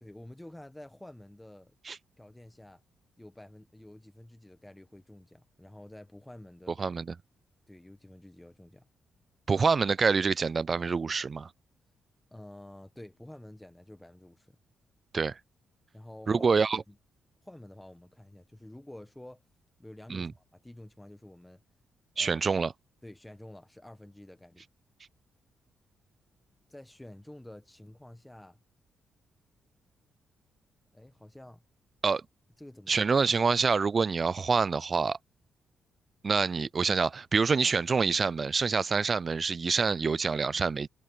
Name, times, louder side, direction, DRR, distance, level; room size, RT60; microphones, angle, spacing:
voice 1, 0.0-1.7 2.2-2.8 3.2-6.9 7.7-8.8 12.3-14.6 15.9-16.5 16.9-17.0 17.4-19.4 19.8-21.6 22.1-22.4 23.0-24.6 26.7-28.6 30.9-31.6 32.6-33.1, left 1 dB, 10° left, 1.1 m, -49 dB
voice 2, 9.5-11.5 15.1-15.4 16.3-16.8 20.1-20.3 22.2-22.7 32.0-32.2 32.9-35.2 36.2-40.9, right 5 dB, 40° right, 0.3 m, -26 dB
cardioid pair, 90°, 0 cm